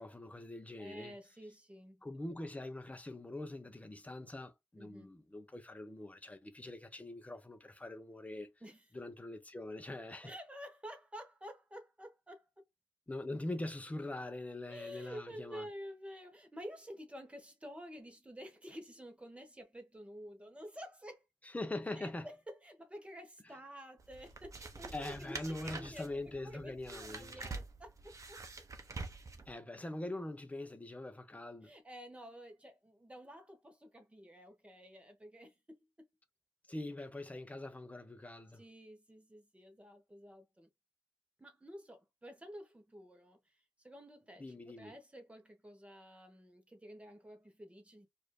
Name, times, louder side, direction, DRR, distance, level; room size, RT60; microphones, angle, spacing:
voice 1, 0.0-1.1 2.0-8.5 8.9-10.3 13.1-15.7 21.4-22.3 23.4-23.5 24.9-27.4 29.5-31.7 36.7-38.6 44.4-45.0, left 2 dB, 15° left, 0.7 m, -43 dB
voice 2, 0.8-2.0 4.8-5.1 8.6-8.8 10.2-12.5 14.7-21.2 21.9-28.4 31.6-36.1 38.5-40.7 41.4-48.1, equal, 15° right, 1.1 m, -50 dB
sound 1, 24.0-29.5, right 3 dB, 40° right, 0.8 m, -47 dB
4.7 x 2.5 x 2.2 m
wide cardioid pair, 110°, 8 cm